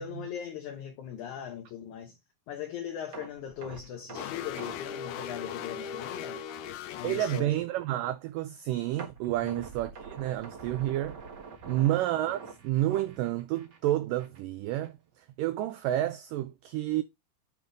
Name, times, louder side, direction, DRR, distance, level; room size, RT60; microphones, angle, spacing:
voice 1, 0.0-2.2 2.5-6.4 6.9-7.7 9.4-9.7 11.7-11.9, left 9 dB, 65° left, 2.0 m, -40 dB
sound 1, 3.1-6.2 6.5-6.6 7.1-7.2 9.0-13.9 14.2-14.4 14.8-14.9, right 5 dB, 70° right, 0.9 m, -46 dB
sound 2, 4.2-7.4, left 8 dB, 85° left, 2.8 m, -38 dB
voice 2, 7.0-11.2 11.6-15.0 15.4-17.0, right 14 dB, 90° right, 1.9 m, -30 dB
9.3 x 3.7 x 3.8 m
omnidirectional pair, 4.4 m